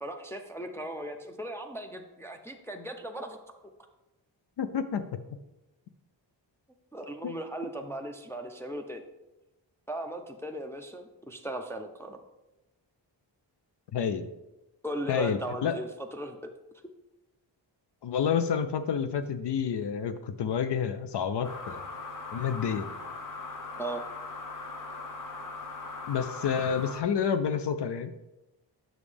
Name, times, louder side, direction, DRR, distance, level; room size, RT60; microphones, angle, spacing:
voice 1, 0.0-3.4 6.9-9.0 9.9-12.2 14.8-16.5 23.8-24.0, right 1 dB, 5° left, 3 dB, 0.4 m, -37 dB
voice 2, 4.6-5.0 7.2-7.3 13.9-14.3 15.1-15.8 18.0-21.8 22.3-22.9 26.1-28.1, left 7 dB, 65° left, 10 dB, 0.5 m, -29 dB
sound 1, 21.4-27.0, left 3 dB, 45° left, 0.9 m, -40 dB
7.1 x 6.2 x 3.3 m, 1.0 s
wide cardioid pair, 115°, 45 cm